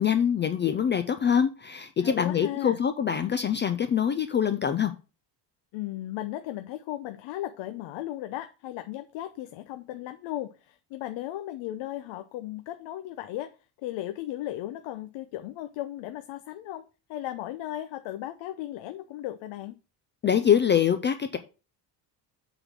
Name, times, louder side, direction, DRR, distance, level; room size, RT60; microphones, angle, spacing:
voice 1, 0.0-4.9 20.2-21.4, left 8 dB, 25° left, 0.3 m, -24 dB
voice 2, 2.0-2.8 5.7-13.6 13.8-16.8 17.1-19.8, left 14 dB, 80° left, 0.8 m, -36 dB
8.1 x 4.0 x 6.0 m
cardioid pair, 170°, 45 cm